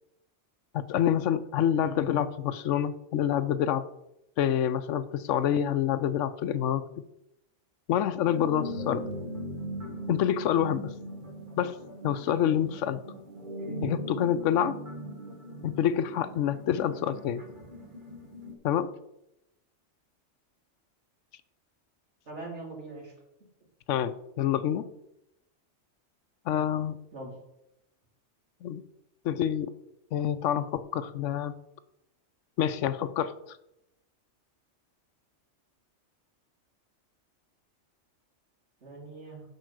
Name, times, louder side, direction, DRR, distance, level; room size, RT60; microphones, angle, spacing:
voice 1, 0.7-3.8 4.4-6.8 7.9-9.1 10.1-10.9 11.6-11.7 12.0-13.0 13.8-14.8 15.6-17.4 18.6-18.9 23.9-24.9 26.5-27.0 28.6-28.8 29.2-29.7 30.1-31.6 32.6-33.3, left 10 dB, 85° left, 14 dB, 0.9 m, -27 dB
sound 1, 8.2-18.5, equal, 45° right, 1.4 m, -40 dB
voice 2, 22.3-23.1 27.1-27.3 38.8-39.4, right 3 dB, 70° right, -1 dB, 2.7 m, -42 dB
8.0 x 4.8 x 6.5 m, 0.84 s
omnidirectional pair, 1.2 m